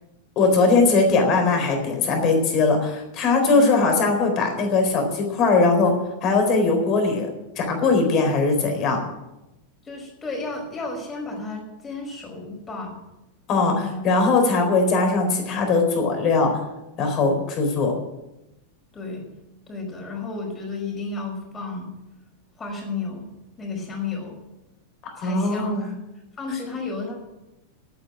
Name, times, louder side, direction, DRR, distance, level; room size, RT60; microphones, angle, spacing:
voice 1, 0.4-5.9 6.2-7.3 7.6-9.0 13.5-16.6 17.0-17.9 25.0-25.9, left 3 dB, 35° left, 4 dB, 4.1 m, -20 dB
voice 2, 3.5-3.9 9.8-13.0 13.6-14.1 18.9-19.2 19.7-21.9 22.6-23.3 23.6-24.4 25.1-25.9 26.4-27.2, left 3 dB, 20° left, 0 dB, 5.5 m, -32 dB
11.5 x 9.5 x 9.0 m, 0.94 s
figure-of-eight pair, 90°, 0 cm